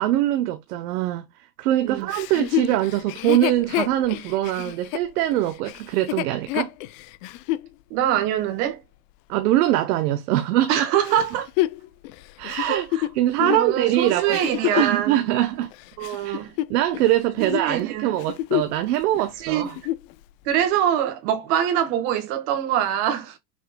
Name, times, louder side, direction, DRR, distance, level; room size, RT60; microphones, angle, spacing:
voice 1, 0.0-6.7 9.3-10.9 12.4-12.9 13.1-14.4 14.7-15.7 16.2-19.8, right 14 dB, 80° right, 0.8 m, -23 dB
Chuckle chortle, 2.1-7.7 8.3-8.4 11.0-15.0 15.6-17.1 17.4-17.7 18.1-18.8 19.1-19.2 19.6-20.1 20.7-20.8, left 16 dB, 60° left, 0.6 m, -28 dB
voice 2, 7.9-8.8 10.7-11.5 12.6-13.0 13.4-15.1 16.0-16.5 17.4-18.1 19.4-19.7 20.4-23.4, right 10 dB, 55° right, 1.6 m, -24 dB
6.3 x 3.8 x 2.2 m
supercardioid pair, 135°, 46 cm